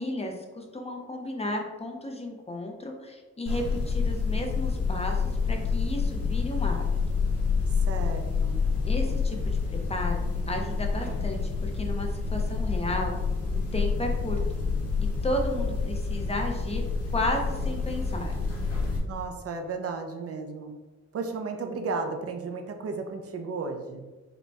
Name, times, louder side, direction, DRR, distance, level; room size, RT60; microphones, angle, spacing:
voice 1, 0.0-6.8 8.9-13.1 13.7-14.4 15.2-16.8 17.1-18.3, left 1 dB, 20° left, 2 dB, 0.6 m, -33 dB
sound 1, 3.5-19.0, left 4 dB, 55° left, 1.4 m, -28 dB
voice 2, 7.8-8.6 19.1-20.7 21.1-24.0, right 4 dB, 55° right, 5 dB, 0.5 m, -34 dB
5.0 x 2.2 x 4.6 m, 1.3 s
wide cardioid pair, 135°, 29 cm